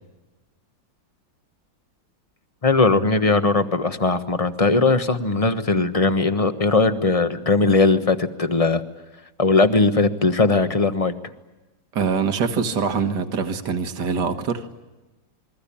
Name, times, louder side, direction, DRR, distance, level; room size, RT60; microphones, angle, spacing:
voice 1, 2.6-8.8 9.4-11.1, left 3 dB, 20° left, 9 dB, 1.1 m, -19 dB
voice 2, 11.9-14.7, right 5 dB, 65° right, 7 dB, 2.2 m, -24 dB
28.5 x 22.0 x 8.6 m, 1.1 s
omnidirectional pair, 2.0 m